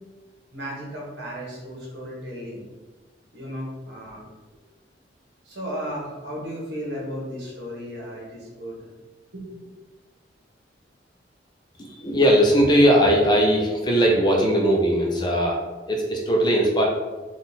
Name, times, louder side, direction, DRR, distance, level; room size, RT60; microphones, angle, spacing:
voice 1, 0.5-2.6 3.3-4.3 5.4-8.8 9.3-9.7, equal, 70° right, -4 dB, 1.4 m, -35 dB
voice 2, 11.8-16.8, equal, 25° left, 0 dB, 0.6 m, -19 dB
3.9 x 2.5 x 4.1 m, 1.2 s
head